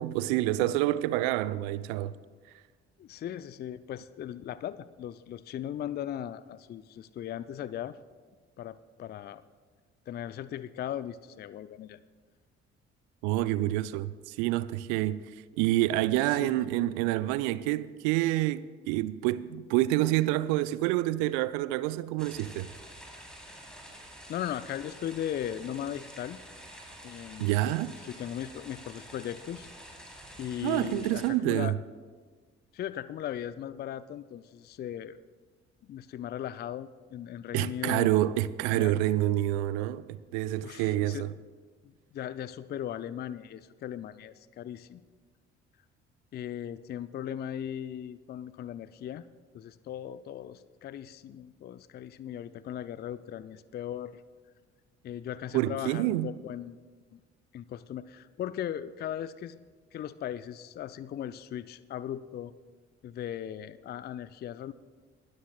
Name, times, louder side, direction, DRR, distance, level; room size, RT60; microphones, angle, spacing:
voice 1, 0.0-2.1 13.2-15.2 15.6-22.7 27.4-28.0 30.6-31.8 37.5-40.1 40.3-41.3 55.5-56.3, right 15 dB, 65° right, 0.5 m, -27 dB
voice 2, 3.0-8.0 8.6-9.4 10.1-12.0 16.3-16.6 24.3-26.4 27.0-27.5 28.0-29.7 30.4-31.7 32.7-35.2 35.8-38.1 38.7-38.9 40.6-41.3 41.8-45.0 46.3-49.2 49.5-54.2 55.0-56.7 57.1-57.2 57.5-59.6 59.9-62.5 63.0-64.7, left 10 dB, 30° left, 0.4 m, -38 dB
sound 1, 22.2-31.3, equal, ahead, 3.5 m, -48 dB
20.5 x 13.0 x 2.3 m
figure-of-eight pair, 45°, 33 cm